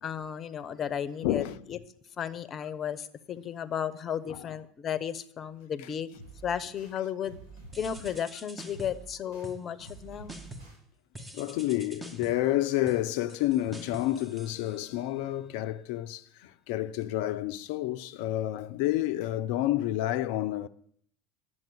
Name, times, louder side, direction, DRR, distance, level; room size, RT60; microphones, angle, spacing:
voice 1, 0.0-1.8 2.2-6.1 6.4-7.4 7.8-10.4, left 8 dB, 40° left, 1.0 m, -34 dB
voice 2, 1.2-1.6 4.3-4.4 11.3-16.2 16.7-20.7, left 14 dB, 65° left, 0.6 m, -29 dB
sound 1, 6.1-6.9 7.2-8.2 8.7-9.5 9.8-10.8, right 3 dB, 70° right, 5.3 m, -48 dB
sound 2, 7.7-9.1 9.4-10.0 10.3-10.8 11.1-15.2, right 1 dB, 10° right, 1.7 m, -47 dB
10.5 x 7.7 x 7.9 m
hypercardioid pair, 80°, 0 cm